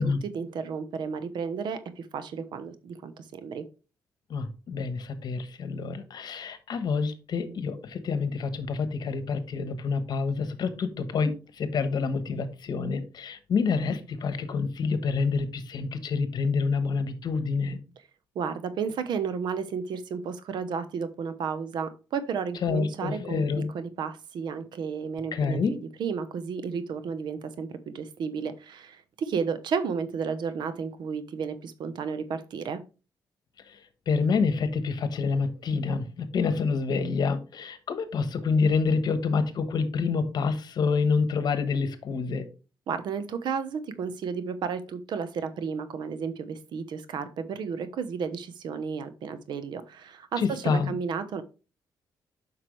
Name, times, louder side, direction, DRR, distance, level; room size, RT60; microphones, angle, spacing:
voice 1, 0.0-3.7 18.3-23.4 23.7-32.8 42.9-51.4, right 6 dB, 80° right, 12 dB, 1.0 m, -33 dB
voice 2, 4.3-17.8 22.6-23.7 25.3-25.8 33.7-33.8 34.1-42.5 50.4-51.0, left 5 dB, 65° left, 11 dB, 1.2 m, -27 dB
7.6 x 5.9 x 3.3 m, 0.32 s
cardioid pair, 90°, 8 cm